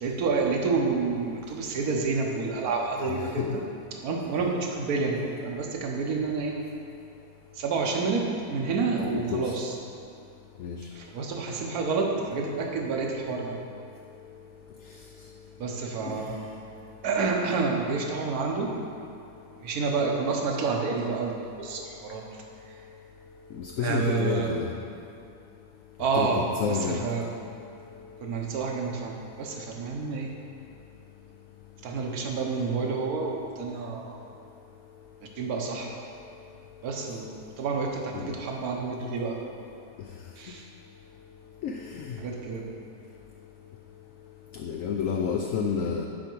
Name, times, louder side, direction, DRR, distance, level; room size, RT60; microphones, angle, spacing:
voice 1, 0.0-3.6 4.0-6.6 7.5-9.7 10.9-13.6 15.6-16.5 17.0-18.7 19.6-22.2 22.7-22.8 23.8-24.6 26.0-27.3 28.2-30.3 31.8-34.2 35.4-36.0 36.8-39.4 40.4-40.7 42.2-42.6, right 4 dB, 70° right, 1 dB, 1.4 m, -29 dB
voice 2, 9.0-9.4 10.6-10.7 23.6-24.7 26.1-27.0 38.1-38.3 41.6-41.7 44.6-46.1, left 6 dB, 70° left, 2 dB, 0.8 m, -29 dB
10.5 x 5.0 x 4.5 m, 2.6 s
omnidirectional pair, 1.7 m